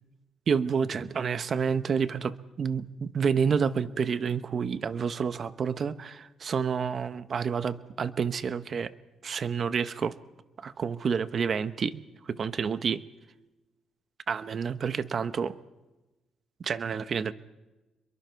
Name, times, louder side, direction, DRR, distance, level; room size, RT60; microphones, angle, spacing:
voice 1, 0.5-8.9 9.2-10.2 10.6-13.0 14.3-15.5 16.6-17.3, right 6 dB, 50° right, 13 dB, 1.0 m, -29 dB
27.0 x 23.0 x 4.6 m, 1.1 s
cardioid pair, 90°, 0 cm